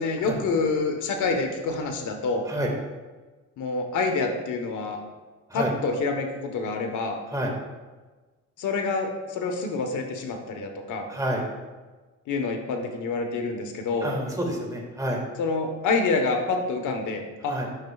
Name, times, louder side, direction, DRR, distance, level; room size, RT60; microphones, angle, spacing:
voice 1, 0.0-2.5 3.6-5.0 5.5-7.2 8.6-11.1 12.3-14.2 15.4-17.6, left 3 dB, 75° left, 4 dB, 1.2 m, -27 dB
voice 2, 11.1-11.4 14.0-15.2 17.5-17.7, equal, 10° right, 0 dB, 1.8 m, -28 dB
10.5 x 6.6 x 2.3 m, 1.3 s
cardioid pair, 90°, 30 cm